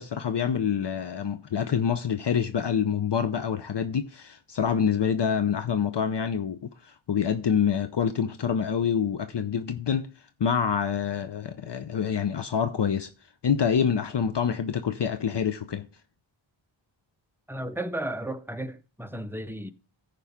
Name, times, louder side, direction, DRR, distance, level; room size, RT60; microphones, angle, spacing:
voice 1, 0.0-10.1 10.4-13.1 13.4-15.9, left 7 dB, 60° left, 0.7 m, -26 dB
voice 2, 17.5-19.7, right 1 dB, 5° right, 0.8 m, -34 dB
14.5 x 5.3 x 3.6 m
wide cardioid pair, 65°, 48 cm